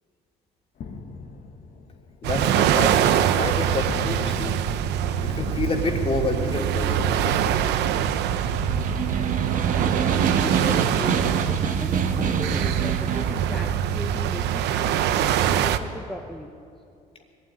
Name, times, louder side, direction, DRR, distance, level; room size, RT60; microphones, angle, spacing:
sound 1, 0.8-10.3, left 5 dB, 55° left, 1.8 m, -41 dB
voice 1, 2.2-3.1 3.4-4.7 5.2-7.2, left 2 dB, 35° left, 1 dB, 3.1 m, -28 dB
sound 2, 2.2-15.8, right 9 dB, 80° right, 0.9 m, -24 dB
Snare drum, 8.4-13.4, right 6 dB, 50° right, 1.6 m, -27 dB
voice 2, 10.4-15.1 15.5-16.5, equal, ahead, 1 dB, 1.3 m, -37 dB
21.0 x 13.0 x 9.4 m, 2.5 s
cardioid pair, 110°, 17 cm